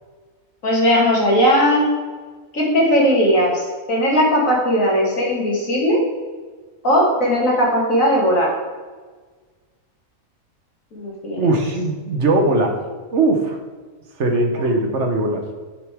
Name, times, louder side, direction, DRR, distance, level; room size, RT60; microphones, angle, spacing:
voice 1, 0.6-1.9 2.5-6.0 6.8-8.5 10.9-11.5, equal, 70° left, -3 dB, 2.6 m, -18 dB
voice 2, 11.4-12.8 13.1-13.6 14.2-15.4, right 2 dB, 60° right, 3 dB, 1.3 m, -19 dB
7.9 x 6.8 x 3.5 m, 1.4 s
omnidirectional pair, 1.4 m